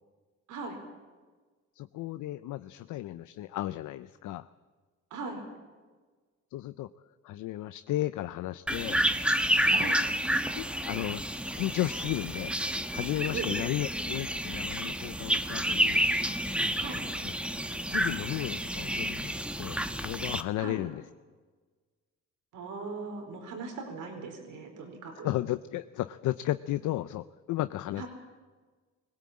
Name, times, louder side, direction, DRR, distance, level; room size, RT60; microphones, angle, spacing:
voice 1, 1.8-4.5 6.5-6.9 7.2-9.0 9.6-9.9 10.5-12.5 12.9-16.0 17.2-17.3 17.8-21.0 25.2-28.0, left 15 dB, 85° left, 13 dB, 0.6 m, -34 dB
voice 2, 5.1-5.4 9.7-10.0 13.3-13.5 16.8-17.0 20.6-20.8 22.5-25.3 28.0-28.1, right 4 dB, 85° right, 3 dB, 4.5 m, -39 dB
sound 1, 8.7-20.4, equal, 5° right, 1.1 m, -30 dB
20.5 x 17.5 x 8.6 m, 1.4 s
cardioid pair, 90°, 30 cm